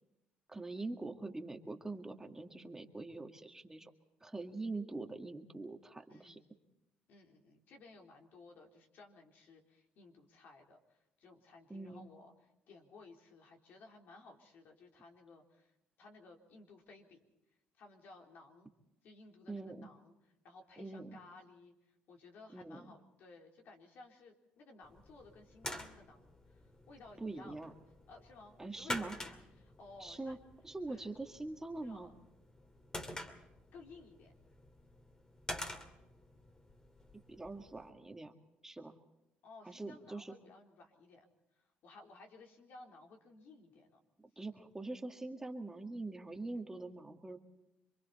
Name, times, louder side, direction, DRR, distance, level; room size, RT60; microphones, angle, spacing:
voice 1, 0.5-3.9 4.2-6.4 11.7-12.0 19.5-19.9 20.8-21.2 22.5-22.9 27.2-27.7 28.6-29.2 30.0-30.4 30.6-32.1 37.3-38.3 38.6-38.9 39.6-40.3 44.4-47.4, right 2 dB, 15° right, 4 dB, 1.8 m, -43 dB
voice 2, 6.1-6.6 7.1-17.3 17.8-18.7 19.0-27.6 28.1-30.4 30.9-31.1 31.8-32.1 33.7-34.3 39.4-41.3 41.5-44.0, left 3 dB, 65° left, 2 dB, 3.8 m, -57 dB
sound 1, 24.8-37.9, left 1 dB, 20° left, 2.5 m, -48 dB
27.5 x 23.5 x 4.2 m, 0.94 s
cardioid pair, 90°, 3 cm